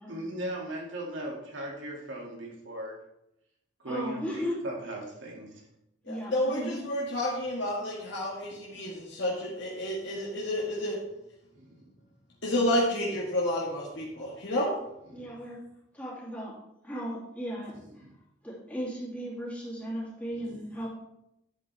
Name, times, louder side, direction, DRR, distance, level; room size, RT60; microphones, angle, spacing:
voice 1, 0.1-3.0 3.8-5.7 11.6-11.7 15.1-15.3 17.8-18.1 20.3-20.5, right 1 dB, 85° right, -2 dB, 2.6 m, -38 dB
voice 2, 3.9-4.6 6.1-6.7 15.1-15.6 15.9-16.5 16.8-17.7 18.4-20.9, equal, 10° left, -6 dB, 3.1 m, -36 dB
voice 3, 6.1-11.0 12.4-14.7, left 1 dB, 70° left, -4 dB, 1.8 m, -30 dB
11.0 x 8.0 x 3.5 m, 0.85 s
head